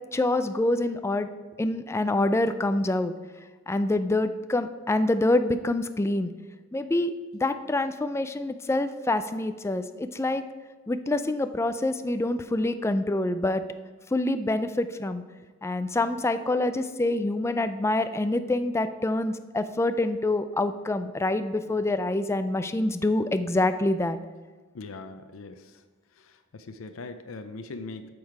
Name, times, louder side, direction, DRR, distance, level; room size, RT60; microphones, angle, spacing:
voice 1, 0.1-1.3 1.6-3.1 3.7-6.3 6.7-7.1 7.4-10.4 10.9-13.6 14.1-15.2 15.6-24.2, left 2 dB, 15° left, 10 dB, 0.3 m, -26 dB
voice 2, 24.7-25.8 26.1-28.1, left 3 dB, 75° left, 8 dB, 0.5 m, -41 dB
8.5 x 6.4 x 4.6 m, 1.4 s
head